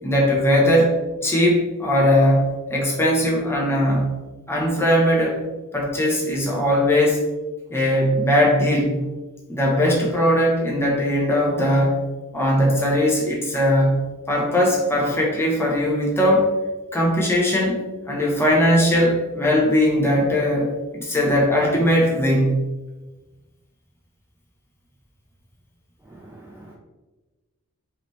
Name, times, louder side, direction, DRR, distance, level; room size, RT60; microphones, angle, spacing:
voice 1, 0.0-0.9 1.2-4.1 4.5-5.4 5.7-7.2 7.7-9.0 9.5-16.5 16.9-22.5, equal, 10° left, -3 dB, 1.0 m, -19 dB
voice 2, 26.1-26.7, right 2 dB, 10° right, -3 dB, 0.4 m, -44 dB
4.8 x 3.4 x 3.2 m, 1.2 s
head